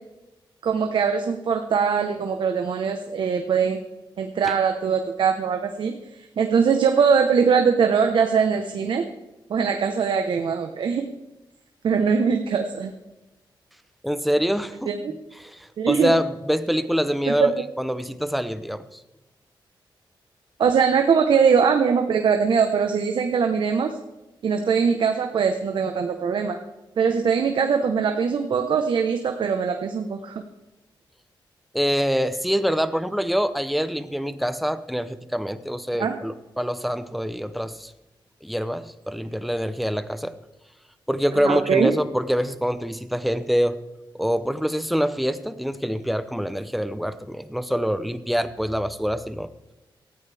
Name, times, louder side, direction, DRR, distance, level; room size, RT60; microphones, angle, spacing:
voice 1, 0.6-3.8 4.2-6.0 6.4-9.1 9.5-11.0 11.8-12.9 14.9-15.1 15.8-16.1 17.4-17.5 20.6-23.9 24.4-26.6 27.0-30.3 36.0-36.1 41.3-41.9, right 6 dB, 70° right, 5 dB, 1.2 m, -21 dB
voice 2, 14.0-14.9 15.4-17.5 17.8-19.0 31.7-37.9 38.4-40.3 41.1-43.8 44.2-49.5, equal, ahead, 11 dB, 0.8 m, -25 dB
18.0 x 14.0 x 3.5 m, 1.0 s
wide cardioid pair, 125°, 9 cm